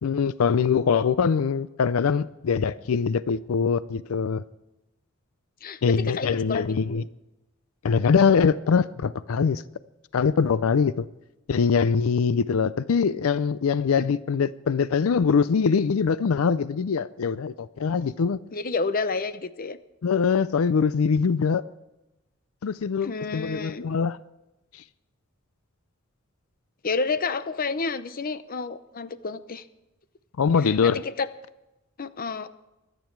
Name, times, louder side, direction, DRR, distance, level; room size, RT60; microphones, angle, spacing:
voice 1, 0.0-4.4 5.8-7.0 7.8-9.6 10.1-11.1 11.5-18.4 20.0-21.6 22.6-24.2 30.4-31.0, left 6 dB, 90° left, 0.4 m, -23 dB
voice 2, 5.6-7.0 18.5-19.8 23.0-23.8 26.8-29.6 30.6-31.3 32.0-32.5, left 4 dB, 45° left, 0.7 m, -30 dB
24.0 x 9.2 x 4.6 m
head